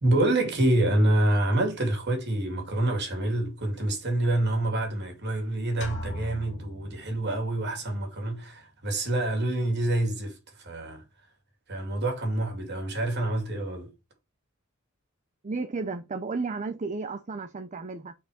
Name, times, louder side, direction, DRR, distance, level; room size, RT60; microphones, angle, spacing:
voice 1, 0.0-11.0 11.7-13.9, right 1 dB, 55° right, 2.7 m, -27 dB
sound 1, 5.8-7.7, left 1 dB, 55° left, 1.6 m, -39 dB
voice 2, 15.4-18.1, right 4 dB, 35° right, 0.5 m, -33 dB
5.3 x 4.5 x 4.9 m
head